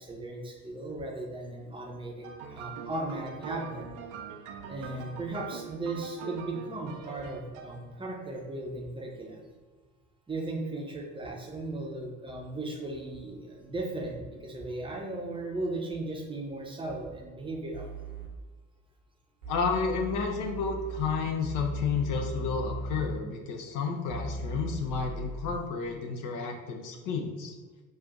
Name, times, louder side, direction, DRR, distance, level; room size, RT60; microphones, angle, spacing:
voice 1, 0.0-3.9 4.7-9.4 10.3-17.9, right 2 dB, 10° right, 0 dB, 0.8 m, -36 dB
sound 1, 2.2-8.0, right 6 dB, 50° right, 0.5 m, -43 dB
sound 2, 17.7-18.3 19.4-23.2 24.1-25.5, right 1 dB, 75° right, 1.1 m, -38 dB
voice 2, 19.5-27.5, left 5 dB, 45° left, 2 dB, 0.6 m, -31 dB
5.4 x 2.5 x 2.4 m, 1.3 s
figure-of-eight pair, 55°, 42 cm